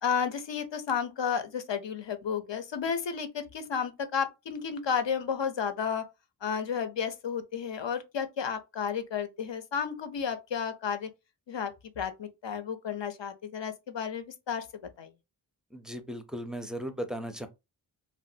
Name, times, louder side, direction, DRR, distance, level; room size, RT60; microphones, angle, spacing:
voice 1, 0.0-6.1 6.4-11.1 11.5-15.1, left 7 dB, 70° left, 0.7 m, -32 dB
voice 2, 15.7-17.5, equal, ahead, 0.5 m, -37 dB
3.1 x 2.4 x 2.7 m
wide cardioid pair, 65°, 46 cm